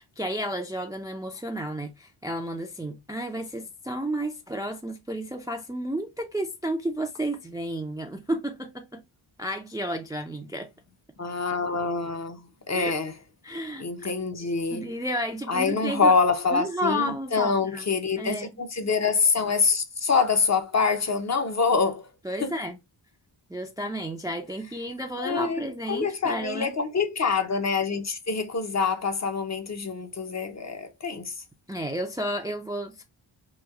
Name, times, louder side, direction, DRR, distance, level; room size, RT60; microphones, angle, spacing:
voice 1, 0.0-9.0 9.4-10.7 12.7-12.9 13.4-14.1 14.7-16.2 16.5-17.8 18.2-18.5 22.2-22.8 23.5-26.8 31.7-33.0, equal, 10° right, 0.4 m, -32 dB
voice 2, 11.2-13.1 13.8-14.9 15.5-22.1 22.4-22.5 25.2-25.6 25.9-31.4, left 5 dB, 35° left, 0.6 m, -25 dB
3.1 x 2.5 x 2.3 m
cardioid pair, 70°, 46 cm